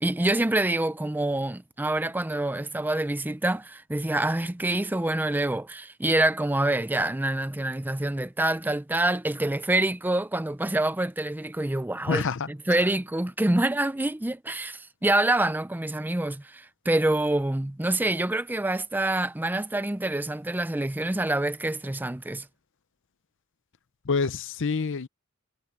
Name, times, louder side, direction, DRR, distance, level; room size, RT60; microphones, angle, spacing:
voice 1, 0.0-22.5, right 1 dB, 10° right, 0.4 m, -26 dB
voice 2, 12.1-12.5 24.0-25.1, left 5 dB, 55° left, 0.6 m, -27 dB
head